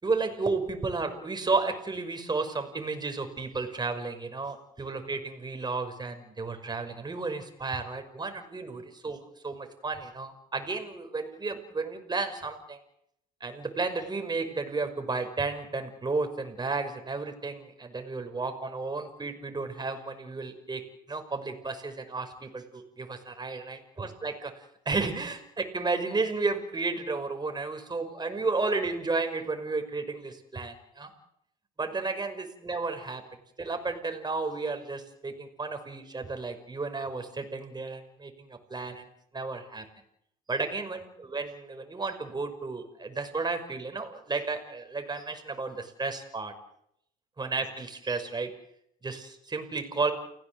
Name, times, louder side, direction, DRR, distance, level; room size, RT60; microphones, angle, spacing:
voice 1, 0.0-12.8 13.4-20.8 21.1-31.1 31.8-33.2 33.6-39.1 39.3-39.8 40.5-46.5 47.4-48.5 49.0-50.1, right 3 dB, 25° right, 6 dB, 5.9 m, -33 dB
29.5 x 16.5 x 7.9 m, 0.75 s
supercardioid pair, 70°, 18 cm